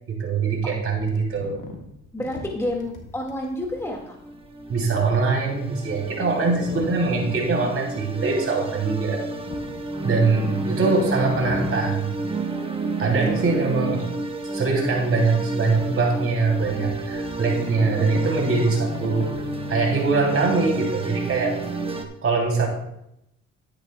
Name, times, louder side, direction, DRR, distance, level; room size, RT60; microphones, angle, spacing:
voice 1, 0.1-1.6 4.7-9.2 10.0-12.2 13.0-14.0 14.5-19.3 19.7-21.6 22.2-22.7, right 4 dB, 50° right, -1 dB, 3.2 m, -23 dB
sound 1, 0.9-10.7 11.1-12.5 12.9-14.2 14.7-14.8 15.3-20.4, left 4 dB, 80° left, 1.8 m, -40 dB
voice 2, 2.1-4.2 17.6-18.1 19.8-20.1, left 1 dB, 10° left, 0 dB, 2.0 m, -30 dB
sound 2, 3.6-22.0, right 2 dB, 20° right, 1.3 m, -30 dB
12.5 x 10.5 x 2.3 m, 0.80 s
cardioid pair, 90°, 30 cm